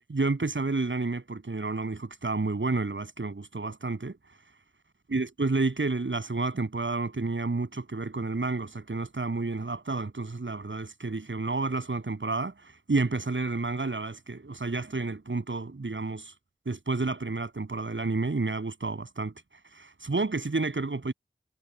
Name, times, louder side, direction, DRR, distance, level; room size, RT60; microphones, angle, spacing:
voice 1, 0.1-4.2 5.1-16.3 16.7-19.3 19.7-21.1, right 3 dB, 90° right, 7.0 m, -30 dB
wide cardioid pair, 50°, 19 cm